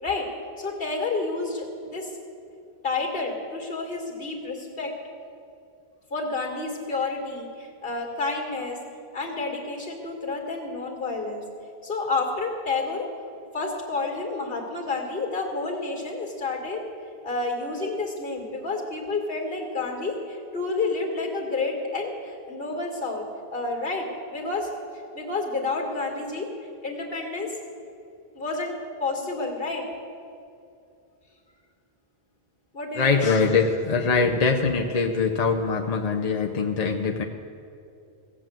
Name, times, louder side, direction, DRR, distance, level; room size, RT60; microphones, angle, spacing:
voice 1, 0.6-2.1 2.8-4.9 6.1-8.8 9.1-11.4 11.8-13.1 13.5-16.8 17.2-24.7 25.1-26.5 26.8-27.5 28.3-29.8 32.7-33.4, left 3 dB, 60° left, 1 dB, 2.4 m, -30 dB
voice 2, 32.9-37.2, left 4 dB, 40° left, 2 dB, 0.7 m, -23 dB
17.0 x 8.1 x 7.6 m, 2.6 s
omnidirectional pair, 1.1 m